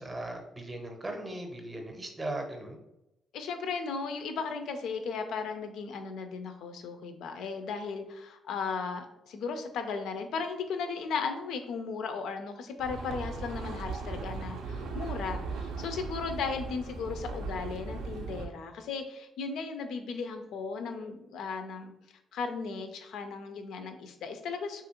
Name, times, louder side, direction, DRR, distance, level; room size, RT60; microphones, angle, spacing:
voice 1, 0.0-2.8, right 1 dB, 20° right, 4 dB, 0.6 m, -38 dB
voice 2, 3.3-21.9 22.3-24.8, left 5 dB, 80° left, 7 dB, 0.4 m, -36 dB
sound 1, 12.8-18.5, right 4 dB, 85° right, 0.4 m, -38 dB
3.0 x 2.4 x 2.8 m, 0.88 s
cardioid pair, 90°, 0 cm